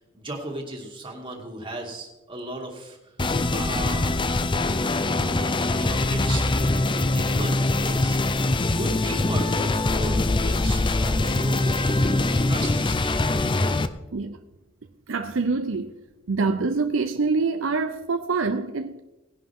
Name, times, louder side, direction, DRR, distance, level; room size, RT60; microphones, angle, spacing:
voice 1, 0.0-3.1 3.5-4.3 4.9-8.4 8.7-12.1 12.5-13.2, right 2 dB, 25° right, 2.7 m, -36 dB
sound 1, 3.2-13.9, left 2 dB, 25° left, 0.6 m, -23 dB
voice 2, 15.1-16.0 16.3-19.0, right 4 dB, 70° right, 0.6 m, -25 dB
19.0 x 10.5 x 3.7 m
head